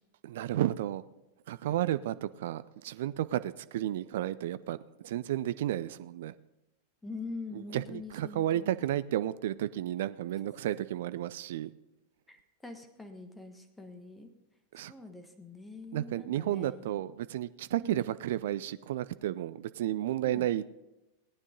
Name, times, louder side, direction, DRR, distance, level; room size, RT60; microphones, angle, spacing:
voice 1, 0.2-1.0 1.5-6.3 7.5-11.7 14.7-14.9 15.9-20.7, right 13 dB, 55° right, 15 dB, 0.5 m, -32 dB
voice 2, 7.0-9.0 12.3-14.3 14.8-17.0 17.8-18.0 20.2-20.5, left 3 dB, 10° left, 6 dB, 1.4 m, -45 dB
18.0 x 9.7 x 3.9 m, 0.97 s
figure-of-eight pair, 90°, 0 cm